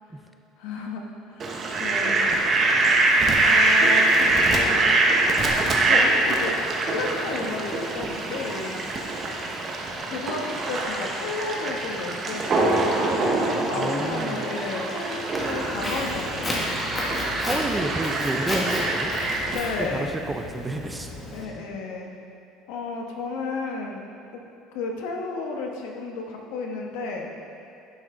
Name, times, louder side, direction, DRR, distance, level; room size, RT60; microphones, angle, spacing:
voice 1, 0.6-1.5 1.8-2.4 2.7-2.8 3.4-5.0 5.8-6.6 6.9-9.3 10.1-16.7 17.0-17.3 19.5-20.3 21.3-22.1 22.7-24.0 24.3-24.4 24.7-27.3, left 3 dB, 80° left, 1 dB, 1.0 m, -33 dB
Fowl, 1.4-19.5, right 2 dB, 30° right, 0.8 m, -24 dB
voice 2, 13.7-14.4 17.4-19.1 19.8-21.1, right 2 dB, 10° right, 4 dB, 0.4 m, -30 dB
Walk footsteps, 15.3-21.4, left 1 dB, 15° left, 1.1 m, -32 dB
10.0 x 5.8 x 3.7 m, 2.8 s
cardioid pair, 160°, 0 cm